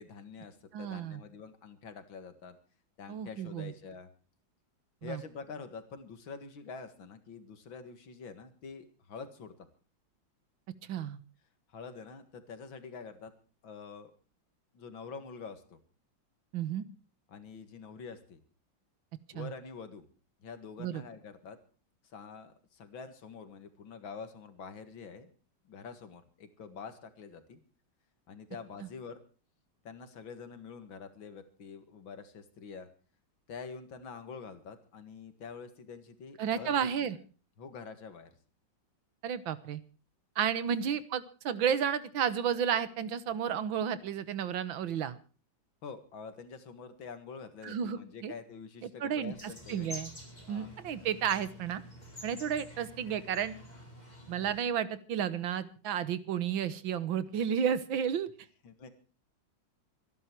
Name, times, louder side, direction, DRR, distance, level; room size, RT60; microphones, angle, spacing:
voice 1, 0.0-2.6 3.0-4.1 5.0-9.7 11.7-13.3 13.6-14.1 14.7-15.8 17.3-18.4 19.3-20.1 20.4-21.6 22.0-25.3 25.6-27.6 28.3-29.2 29.8-32.9 33.5-37.1 37.6-38.3 45.8-49.4 49.7-49.9 50.5-50.7 58.6-58.9, left 5 dB, 80° left, 10 dB, 2.6 m, -46 dB
voice 2, 0.7-1.2 3.1-3.7 5.0-5.2 10.9-11.2 16.5-16.8 19.3-19.5 20.8-21.0 36.4-37.2 39.2-39.8 40.4-45.2 47.6-48.3 48.8-50.1 50.5-51.8 52.2-53.6 54.3-58.3, right 8 dB, 80° right, 15 dB, 1.9 m, -32 dB
sound 1, 49.3-54.6, left 1 dB, 20° left, 5.5 m, -48 dB
25.0 x 11.0 x 4.6 m, 0.37 s
omnidirectional pair, 2.1 m